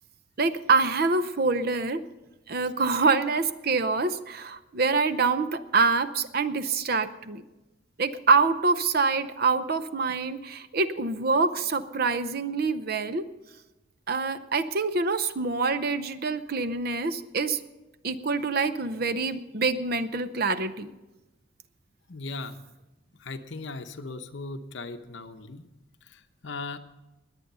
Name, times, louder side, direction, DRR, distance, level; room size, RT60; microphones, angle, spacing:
voice 1, 0.4-2.0 2.5-7.4 8.0-13.3 14.1-17.6 18.0-20.9, right 4 dB, 50° right, 12 dB, 0.7 m, -25 dB
voice 2, 22.1-22.6 23.1-25.7 26.0-26.8, left 3 dB, 60° left, 8 dB, 0.9 m, -38 dB
21.0 x 8.3 x 5.5 m, 1.1 s
head